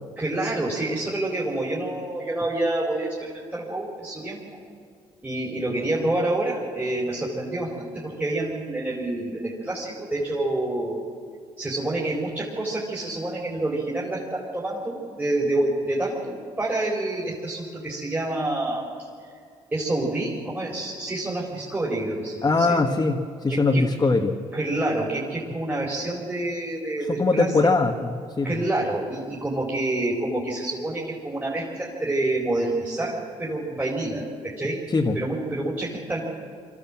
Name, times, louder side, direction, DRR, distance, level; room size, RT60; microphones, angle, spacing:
voice 1, 0.2-4.6 5.2-11.0 11.6-19.3 19.7-22.8 23.5-23.8 24.5-27.5 28.4-34.8 35.1-36.2, right 2 dB, 15° right, -5 dB, 4.5 m, -28 dB
voice 2, 22.4-23.2 23.4-24.4 27.2-28.5 34.9-35.2, left 3 dB, 30° left, 1 dB, 1.6 m, -21 dB
23.5 x 14.5 x 7.6 m, 2.3 s
supercardioid pair, 75°, 12 cm